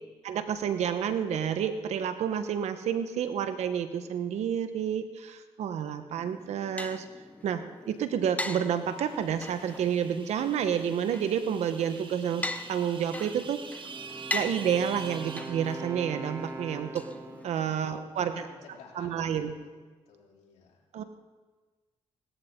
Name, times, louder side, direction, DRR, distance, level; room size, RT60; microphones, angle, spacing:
voice 1, 0.2-7.0 7.4-12.4 12.7-13.6 14.3-17.0 17.4-18.5 18.9-19.5 20.9-21.0, right 8 dB, 80° right, 9 dB, 1.2 m, -29 dB
sound 1, 6.2-17.8, left 2 dB, 15° left, 1.0 m, -41 dB
sound 2, 8.3-16.4, right 5 dB, 45° right, 1.4 m, -47 dB
Wind instrument woodwind instrument, 13.9-17.7, right 2 dB, 25° right, 3.0 m, -42 dB
voice 2, 17.5-19.5 20.1-20.8, left 4 dB, 90° left, -2 dB, 3.4 m, -53 dB
18.0 x 13.5 x 3.8 m, 1.4 s
cardioid pair, 75°, 11 cm